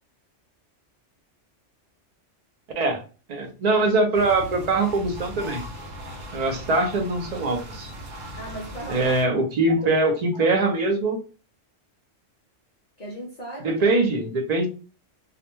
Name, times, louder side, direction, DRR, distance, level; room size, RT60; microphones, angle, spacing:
voice 1, 3.3-5.6 6.3-7.9 8.9-11.2 13.6-14.7, right 2 dB, 45° right, 0.5 m, -22 dB
sound 1, 4.1-9.2, equal, 70° right, 1.1 m, -38 dB
voice 2, 8.4-9.2 9.7-9.9 10.3-10.5 13.0-13.9, right 1 dB, 45° left, 0.5 m, -36 dB
2.4 x 2.1 x 2.9 m
omnidirectional pair, 1.3 m